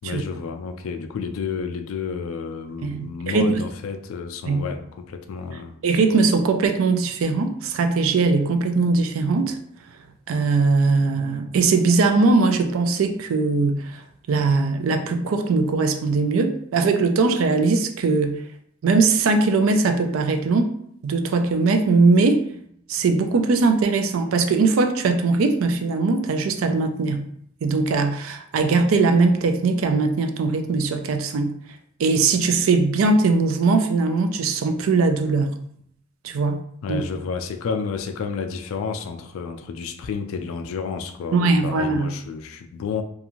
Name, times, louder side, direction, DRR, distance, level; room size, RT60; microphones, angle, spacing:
voice 1, 0.0-5.7 36.8-43.0, left 5 dB, 80° left, 0.3 m, -30 dB
voice 2, 2.8-3.5 4.5-4.7 5.8-9.6 10.3-14.0 14.3-18.4 18.8-20.7 21.0-22.4 22.9-27.3 27.6-31.5 32.0-35.5 36.2-36.6 36.9-37.0 41.3-42.1, right 3 dB, 75° right, 0.4 m, -20 dB
2.5 x 2.4 x 2.9 m
head